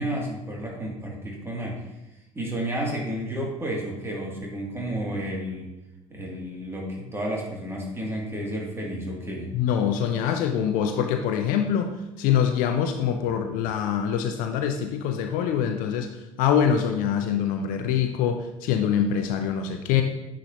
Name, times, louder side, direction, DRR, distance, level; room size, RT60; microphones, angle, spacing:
voice 1, 0.0-1.9 2.3-5.7 6.1-9.5, right 1 dB, 15° right, -2 dB, 2.5 m, -31 dB
voice 2, 9.5-11.9 12.2-16.1 16.4-20.0, left 8 dB, 55° left, 6 dB, 0.6 m, -24 dB
9.7 x 5.1 x 2.9 m, 0.94 s
figure-of-eight pair, 60°, 17 cm